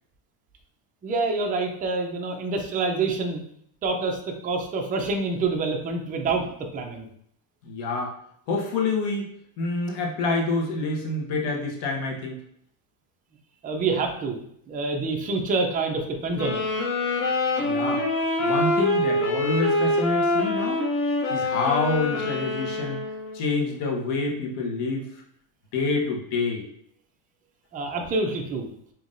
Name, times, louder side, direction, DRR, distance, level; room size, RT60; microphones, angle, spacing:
voice 1, 1.0-3.4 3.8-7.1 13.6-14.4 14.7-16.7 27.7-28.7, right 3 dB, 20° right, 2 dB, 0.4 m, -27 dB
voice 2, 7.6-8.1 8.5-9.3 9.6-12.4 17.6-18.0 18.4-20.8 21.3-23.0 23.3-25.1 25.7-26.6, left 3 dB, 55° left, 0 dB, 1.2 m, -27 dB
sound 1, 16.3-23.4, left 2 dB, 30° left, 0.9 m, -25 dB
5.6 x 2.9 x 2.6 m, 0.68 s
cardioid pair, 145°, 48 cm